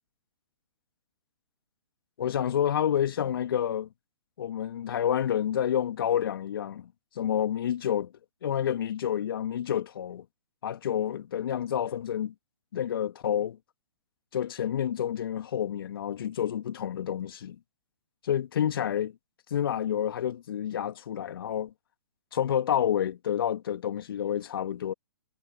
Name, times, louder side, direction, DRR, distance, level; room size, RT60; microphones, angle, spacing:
voice 1, 2.2-3.9 4.4-6.9 7.2-8.1 8.4-10.2 10.6-12.3 12.7-13.6 14.3-17.6 18.2-19.1 19.5-21.7 22.3-24.9, left 9 dB, 55° left, 2.4 m, -29 dB
figure-of-eight pair, 125°, 14 cm